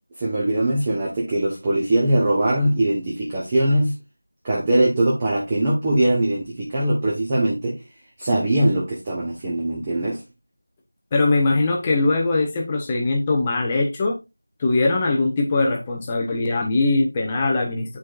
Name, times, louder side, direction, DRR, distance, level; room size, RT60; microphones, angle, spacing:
voice 1, 0.2-3.9 4.4-7.8 8.2-10.2, right 1 dB, 15° right, 1.1 m, -21 dB
voice 2, 11.1-14.2 14.6-18.0, left 2 dB, 10° left, 0.8 m, -21 dB
9.6 x 4.7 x 2.5 m
figure-of-eight pair, 175°, 0 cm